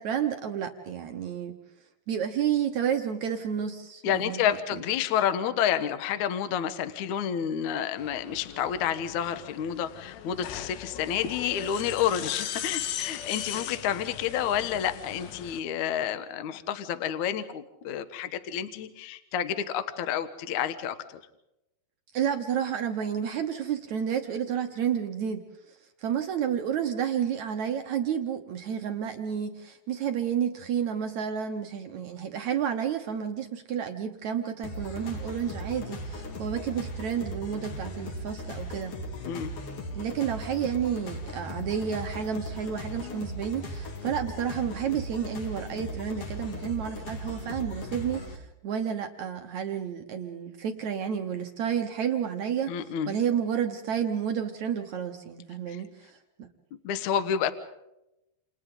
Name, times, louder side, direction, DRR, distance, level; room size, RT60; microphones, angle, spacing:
voice 1, 0.0-1.5 2.1-4.6 22.1-38.9 39.9-56.5, right 8 dB, 75° right, 5 dB, 1.7 m, -31 dB
voice 2, 4.0-21.0 39.3-39.5 52.7-53.2 55.7-55.8 56.8-57.5, left 9 dB, 65° left, 10 dB, 2.1 m, -29 dB
sound 1, 8.0-15.6, left 10 dB, 85° left, 3.4 m, -38 dB
sound 2, 34.6-48.4, left 1 dB, 45° left, 2.5 m, -38 dB
29.5 x 29.0 x 3.9 m, 0.89 s
omnidirectional pair, 4.9 m